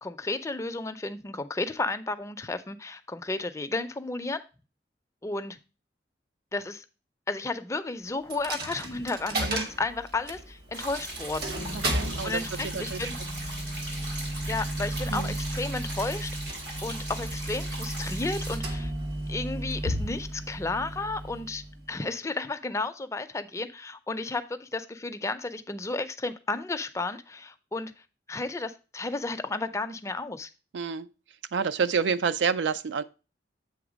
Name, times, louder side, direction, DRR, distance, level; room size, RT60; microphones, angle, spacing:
voice 1, 0.0-4.4 5.2-5.6 6.5-6.8 7.3-11.5 12.2-13.1 14.5-18.9 19.3-27.9 28.3-30.5, left 3 dB, 15° left, 0.4 m, -33 dB
Coin (dropping), 8.3-22.0, right 1 dB, 55° right, 1.1 m, -34 dB
voice 2, 9.3-9.7 11.9-13.1 15.1-15.4 30.7-31.1 31.5-33.0, right 6 dB, 75° right, 0.4 m, -29 dB
sound 1, 10.7-18.6, right 1 dB, 90° right, 4.0 m, -39 dB
sound 2, 11.5-15.4, left 4 dB, 65° left, 0.6 m, -48 dB
7.9 x 3.3 x 5.0 m
head